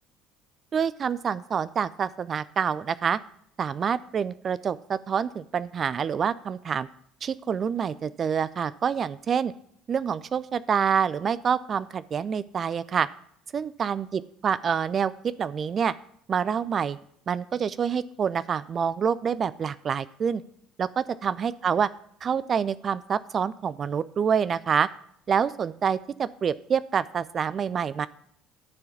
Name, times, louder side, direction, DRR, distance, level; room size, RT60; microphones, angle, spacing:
voice 1, 0.7-3.2 3.6-6.9 7.2-9.5 9.9-13.1 13.5-15.9 16.3-17.0 17.3-20.4 20.8-21.9 22.2-24.9 25.3-28.1, right 7 dB, 40° right, 16 dB, 0.3 m, -27 dB
9.7 x 4.6 x 7.0 m, 0.67 s
figure-of-eight pair, 60°, 0 cm